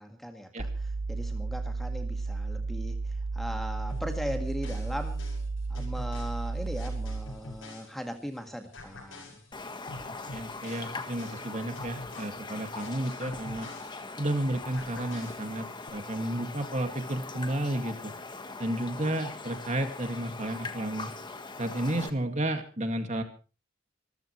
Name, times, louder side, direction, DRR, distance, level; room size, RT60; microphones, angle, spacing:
voice 1, 0.0-5.3 5.7-9.4, equal, ahead, 5 dB, 1.9 m, -39 dB
sound 1, 0.6-7.4, right 3 dB, 60° right, 1.1 m, -33 dB
sound 2, 3.9-8.4 8.7-14.4 14.7-15.9, left 1 dB, 75° left, 6.9 m, -47 dB
Raindrop, 9.5-22.1, left 3 dB, 20° left, 1.5 m, -41 dB
voice 2, 10.1-13.7 14.2-15.7 15.9-18.1 18.6-21.1 21.6-23.2, right 1 dB, 35° right, 6 dB, 2.2 m, -32 dB
25.5 x 14.5 x 3.2 m, 0.36 s
head